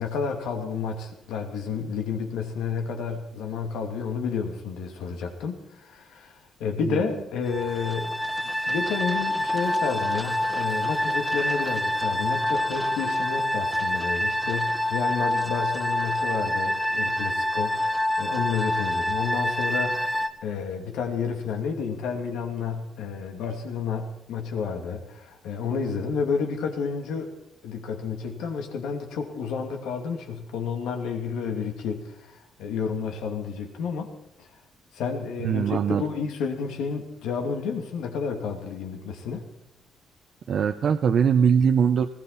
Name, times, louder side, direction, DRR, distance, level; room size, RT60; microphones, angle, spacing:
voice 1, 0.0-8.2 8.7-27.3 27.6-34.1 34.4-34.5 34.9-39.5, left 6 dB, 90° left, 4 dB, 2.6 m, -31 dB
sound 1, 7.5-20.3, left 1 dB, ahead, 1.5 m, -26 dB
voice 2, 35.4-36.0 40.5-42.1, right 7 dB, 60° right, 7 dB, 0.8 m, -21 dB
20.0 x 17.0 x 4.1 m, 0.86 s
cardioid pair, 90°, 0 cm